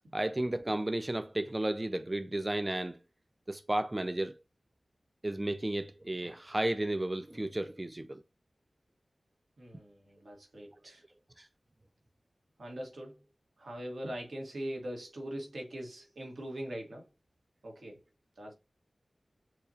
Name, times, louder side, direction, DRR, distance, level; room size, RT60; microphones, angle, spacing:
voice 1, 0.1-3.0 3.5-4.4 5.2-8.2 11.4-11.5, right 1 dB, 25° right, 0.3 m, -33 dB
voice 2, 9.6-11.0 12.6-13.2 13.6-17.1 17.6-18.0 18.4-18.5, right 1 dB, 80° right, 1.8 m, -41 dB
6.7 x 2.8 x 2.8 m
wide cardioid pair, 60°, 0 cm